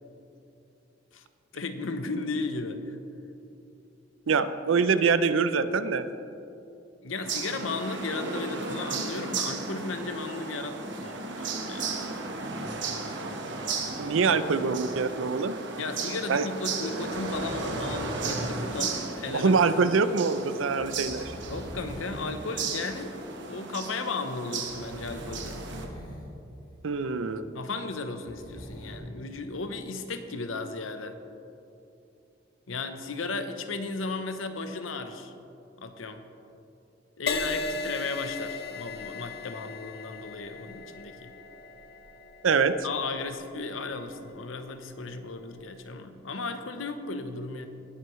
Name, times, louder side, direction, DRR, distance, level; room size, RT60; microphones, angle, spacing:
voice 1, 1.5-2.8 7.0-11.9 15.8-19.6 21.5-23.2 23.4-25.6 27.5-31.2 32.7-35.3 35.8-36.2 37.2-41.3 42.8-47.7, left 3 dB, 85° left, 8 dB, 0.9 m, -35 dB
voice 2, 4.3-6.1 14.0-15.5 16.3-16.4 19.3-21.3 26.8-27.5 42.4-42.7, right 5 dB, 80° right, 12 dB, 0.5 m, -24 dB
sound 1, 7.2-25.9, right 4 dB, 65° right, 1.2 m, -35 dB
sound 2, 17.0-18.7 20.8-22.4 22.7-22.9 24.6-26.3 26.6-26.7 28.0-28.9, equal, 20° left, 2.4 m, -41 dB
Crash cymbal, 37.3-44.9 45.6-45.9, left 4 dB, 55° left, 0.7 m, -37 dB
19.0 x 9.3 x 3.2 m, 2.8 s
head